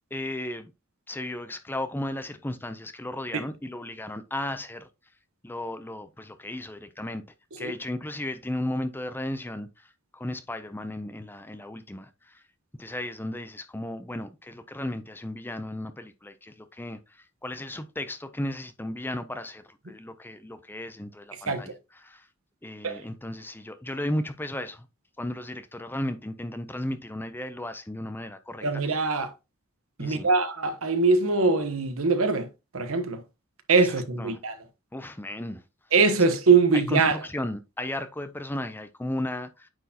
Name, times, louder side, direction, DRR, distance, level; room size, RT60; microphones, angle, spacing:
voice 1, 0.1-0.7 1.1-4.9 5.4-7.2 7.6-12.4 12.8-22.3 22.6-24.9 25.2-29.1 30.0-30.3 33.8-34.4 34.9-35.6 36.7-39.7, left 1 dB, 10° left, 0.5 m, -35 dB
voice 2, 28.6-29.3 30.0-32.5 32.7-33.2 33.7-34.5 35.9-37.1, right 4 dB, 65° right, 1.1 m, -22 dB
9.2 x 4.4 x 2.9 m
head